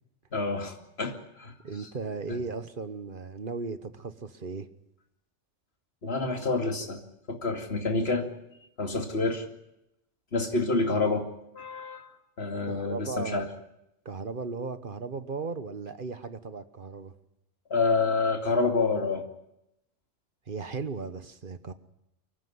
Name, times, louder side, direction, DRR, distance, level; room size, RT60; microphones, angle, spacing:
voice 1, 0.3-1.5 6.0-7.0 7.3-8.3 8.8-9.4 10.3-11.3 11.5-12.1 12.4-13.5 17.7-19.2, left 3 dB, 65° left, 5 dB, 2.7 m, -28 dB
voice 2, 1.6-4.7 12.7-13.5 14.0-17.1 20.5-21.7, right 4 dB, 50° right, 12 dB, 1.3 m, -36 dB
24.5 x 14.5 x 9.5 m, 0.83 s
omnidirectional pair, 1.2 m